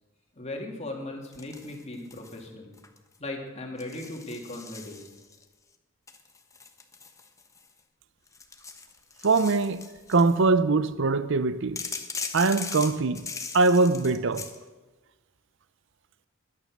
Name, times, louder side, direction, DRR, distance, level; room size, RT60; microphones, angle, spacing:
voice 1, 0.4-2.8 3.2-5.0, left 2 dB, 30° left, 2.8 m, -38 dB
sound 1, 1.3-2.4 2.7-3.2 3.8-5.4 6.1-7.8 8.3-10.4 11.8-14.6, left 4 dB, 15° left, 1.1 m, -40 dB
voice 2, 9.2-9.8 10.1-11.8 12.3-13.2 13.5-14.5, right 3 dB, 60° right, 0.6 m, -22 dB
21.0 x 9.7 x 6.5 m
head